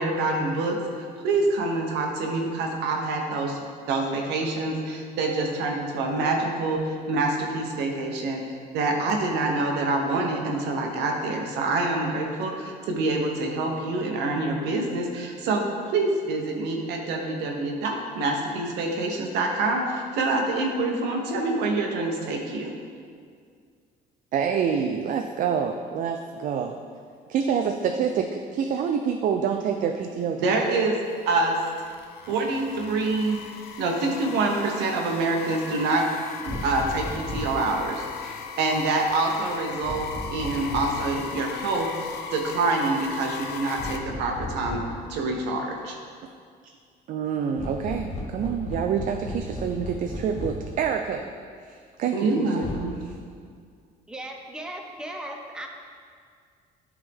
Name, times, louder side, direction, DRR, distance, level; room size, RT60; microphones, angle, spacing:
voice 1, 0.0-3.6 3.9-8.4 8.7-15.6 15.9-22.7 30.4-31.0 31.3-31.6 32.3-33.4 33.8-36.1 36.4-44.8 45.1-46.0 52.1-53.0, right 2 dB, 85° right, 2 dB, 1.0 m, -26 dB
voice 2, 24.3-26.8 27.3-30.6 46.6-46.7 47.1-51.3 51.6-52.7 53.0-53.2, right 7 dB, 50° right, 5 dB, 0.4 m, -27 dB
sound 1, 30.6-44.0, left 7 dB, 75° left, 0.6 m, -39 dB
sound 2, 36.5-37.7 39.8-41.1 43.8-45.0 47.6-50.7 52.6-52.8, left 1 dB, 40° left, 1.1 m, -35 dB
voice 3, 54.1-55.7, right 1 dB, 5° right, 2 dB, 0.6 m, -37 dB
9.5 x 3.7 x 3.5 m, 2.1 s
cardioid pair, 110°, 17 cm